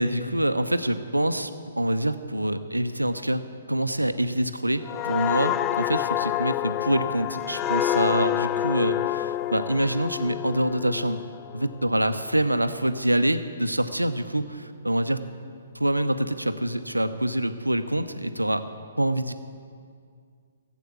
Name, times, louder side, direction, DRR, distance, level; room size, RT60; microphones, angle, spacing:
voice 1, 0.0-1.5 1.8-11.2 11.5-15.2 15.7-18.6 19.0-19.3, right 1 dB, 85° right, 10 dB, 0.8 m, -25 dB
sound 1, 4.8-12.3 12.7-13.0, left 13 dB, 20° left, 0.3 m, -28 dB
16.0 x 8.3 x 7.1 m, 2.2 s
figure-of-eight pair, 125°, 0 cm